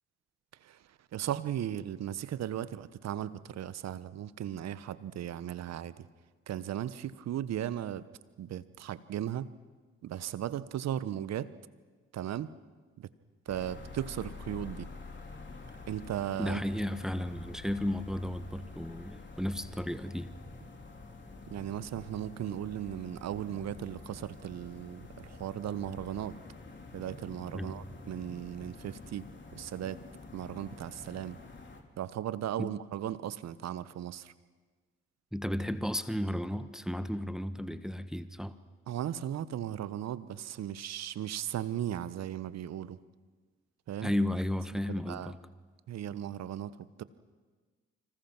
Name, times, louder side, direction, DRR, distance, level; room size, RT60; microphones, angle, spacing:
voice 1, 0.6-6.1 6.5-8.1 8.4-9.5 10.0-11.5 12.1-12.5 13.0-13.1 13.5-14.9 15.9-16.6 21.5-26.4 26.9-30.1 30.3-31.4 32.0-34.3 38.9-43.0 43.9-44.1 44.9-45.3 45.9-47.0, right 11 dB, 60° right, 1.2 m, -37 dB
sound 1, 13.5-31.8, left 3 dB, 40° left, 3.8 m, -48 dB
voice 2, 16.4-20.3 27.5-27.7 32.6-32.7 35.3-38.5 44.0-45.4, left 1 dB, ahead, 1.5 m, -33 dB
29.0 x 26.0 x 6.1 m
hypercardioid pair, 45°, 30 cm